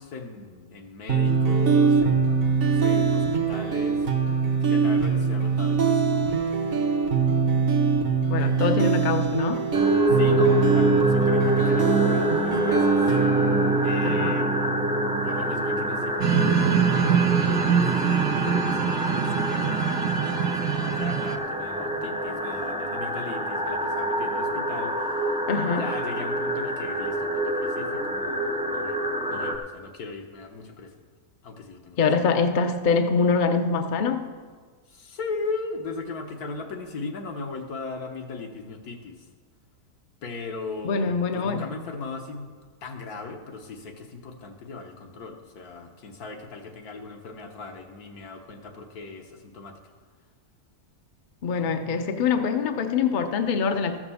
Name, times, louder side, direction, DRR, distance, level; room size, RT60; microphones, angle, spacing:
voice 1, 0.0-4.1 4.6-6.6 10.1-13.1 13.8-14.6 15.2-25.3 25.6-30.9 31.4-32.0 34.9-39.2 40.2-42.5 42.8-49.8, left 4 dB, 75° left, 1.6 m, -38 dB
sound 1, 1.1-16.1, right 5 dB, 45° right, 0.9 m, -23 dB
voice 2, 8.3-9.7 14.0-14.4 25.5-25.9 32.0-34.3 40.8-41.7 51.4-54.0, left 5 dB, 45° left, 0.6 m, -24 dB
sound 2, 9.7-29.6, right 1 dB, 5° right, 0.5 m, -26 dB
sound 3, 16.2-21.4, right 8 dB, 70° right, 1.0 m, -24 dB
13.5 x 5.9 x 7.0 m
omnidirectional pair, 1.6 m